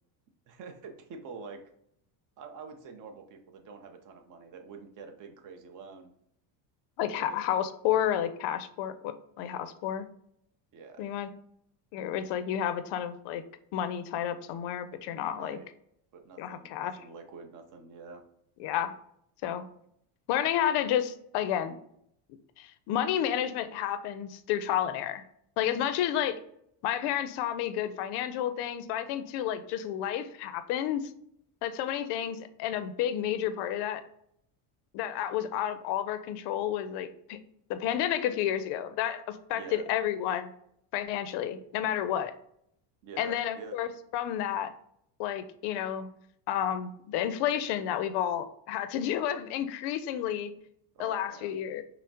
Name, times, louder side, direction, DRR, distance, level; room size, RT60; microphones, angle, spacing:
voice 1, 0.5-1.6 2.4-6.1 7.1-7.4 10.7-11.0 15.3-15.7 16.1-18.2 39.5-39.9 43.0-43.8 50.9-51.5, right 5 dB, 40° right, 5 dB, 0.6 m, -46 dB
voice 2, 7.0-10.1 11.0-11.3 11.9-13.4 13.7-15.6 16.4-16.9 18.6-18.9 19.4-19.6 20.3-21.8 22.3-25.2 25.6-26.4 26.8-31.1 31.6-34.0 34.9-37.4 37.7-40.5 40.9-42.3 43.2-44.7 45.2-46.1 46.5-50.5 51.0-51.8, left 10 dB, 55° left, 11 dB, 0.5 m, -31 dB
5.5 x 2.1 x 2.7 m, 0.71 s
cardioid pair, 135°, 50 cm